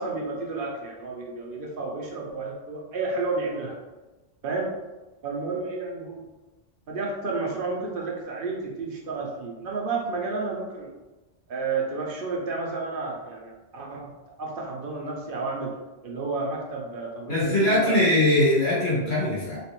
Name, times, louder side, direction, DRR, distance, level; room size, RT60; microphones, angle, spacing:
voice 1, 0.0-3.7 4.4-4.7 5.2-6.2 6.9-10.9 11.5-14.1 14.4-15.7 16.0-18.1, right 3 dB, 60° right, -1 dB, 0.8 m, -31 dB
voice 2, 17.3-19.6, left 1 dB, 75° left, -7 dB, 1.4 m, -21 dB
3.2 x 2.9 x 2.9 m, 1.1 s
omnidirectional pair, 1.1 m